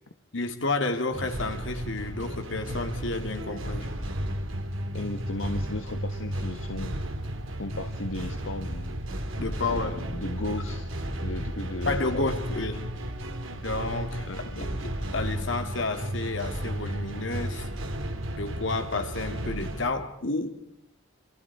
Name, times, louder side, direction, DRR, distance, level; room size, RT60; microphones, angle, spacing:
voice 1, 0.3-3.9 9.4-10.0 11.9-12.8 13.6-14.3 14.5-17.7 18.3-20.5, left 3 dB, 70° left, 2.5 m, -31 dB
sound 1, 1.1-19.9, equal, 85° right, 2.8 m, -33 dB
voice 2, 4.9-7.0 7.6-9.0 9.6-12.4 14.3-14.8, left 2 dB, 85° left, 1.5 m, -36 dB
28.0 x 26.5 x 4.8 m
head